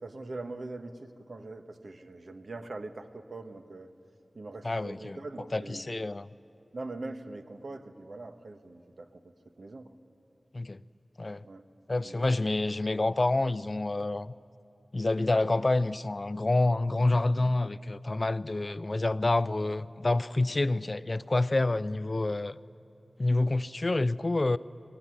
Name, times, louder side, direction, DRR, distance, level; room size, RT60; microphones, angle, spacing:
voice 1, 0.0-3.9 4.3-5.9 6.7-9.2 9.6-9.9 11.4-11.6 12.0-12.4, right 2 dB, 75° right, 1.4 m, -42 dB
voice 2, 4.6-5.2 5.5-6.3 10.5-10.8 11.2-11.4 11.9-14.3 14.9-22.6 23.2-24.6, left 2 dB, 45° left, 0.5 m, -28 dB
23.5 x 20.5 x 9.9 m
wide cardioid pair, 60°, 0 cm